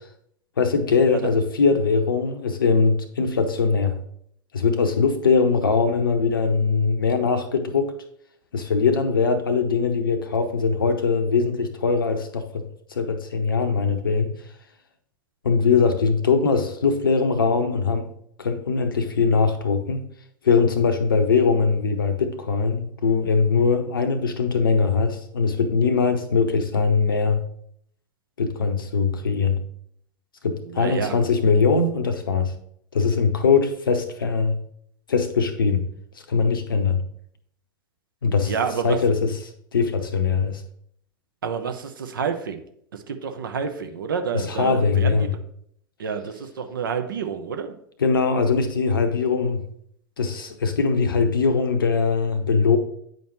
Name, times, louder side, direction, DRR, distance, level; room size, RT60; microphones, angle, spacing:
voice 1, 0.6-4.0 4.5-7.9 8.5-14.4 15.4-18.1 18.4-20.1 20.4-27.4 28.4-29.6 30.4-32.5 32.9-34.6 35.1-35.9 36.3-37.0 38.2-38.5 38.8-39.4 39.7-40.6 44.3-45.3 48.0-49.6 50.2-52.8, left 5 dB, 80° left, 0.7 m, -21 dB
voice 2, 30.7-31.2 38.5-39.0 41.4-42.6 42.9-45.3 46.0-47.7, right 6 dB, 75° right, 0.7 m, -28 dB
9.1 x 5.2 x 3.0 m
figure-of-eight pair, 85°, 11 cm